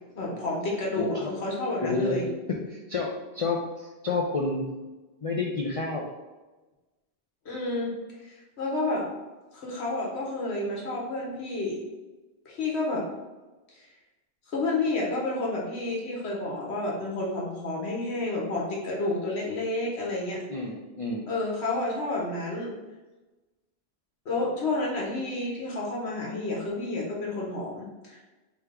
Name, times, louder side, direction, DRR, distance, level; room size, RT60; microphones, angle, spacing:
voice 1, 0.2-2.3 7.4-9.1 9.5-11.8 12.4-13.1 13.7-13.8 14.5-20.4 21.3-22.8 24.2-28.2, left 2 dB, 90° left, -3 dB, 1.3 m, -30 dB
voice 2, 1.0-1.3 1.8-2.2 2.5-4.7 5.2-6.1 20.5-21.3, left 3 dB, 50° left, -1 dB, 0.4 m, -30 dB
3.3 x 3.0 x 3.6 m, 1.2 s
omnidirectional pair, 1.1 m